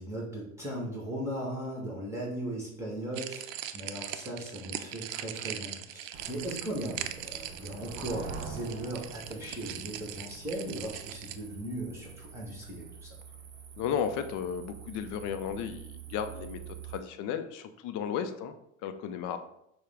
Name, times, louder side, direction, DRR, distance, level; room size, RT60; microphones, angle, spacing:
voice 1, 0.0-13.1, right 1 dB, 5° right, -4 dB, 1.5 m, -38 dB
sound 1, 3.1-11.4, right 11 dB, 70° right, 0.5 m, -40 dB
sound 2, 6.1-17.0, right 6 dB, 40° right, 1.1 m, -46 dB
voice 2, 13.8-18.5 18.8-19.4, left 8 dB, 50° left, 9 dB, 0.6 m, -34 dB
6.5 x 2.2 x 3.6 m, 0.75 s
hypercardioid pair, 85°, 40 cm